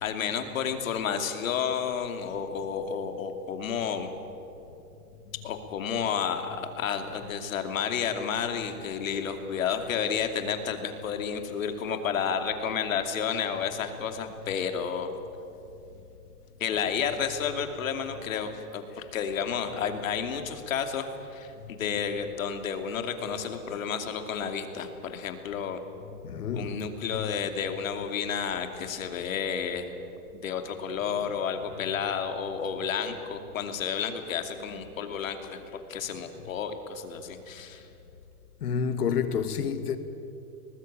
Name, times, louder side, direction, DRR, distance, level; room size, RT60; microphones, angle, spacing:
voice 1, 0.0-4.1 5.4-15.1 16.6-25.8 26.5-30.0 30.3-37.9, left 7 dB, 60° left, 2.7 m, -31 dB
voice 2, 26.2-26.8 27.1-27.3 38.6-40.0, left 7 dB, 90° left, 2.3 m, -29 dB
24.0 x 20.0 x 8.8 m
supercardioid pair, 180°, 45 cm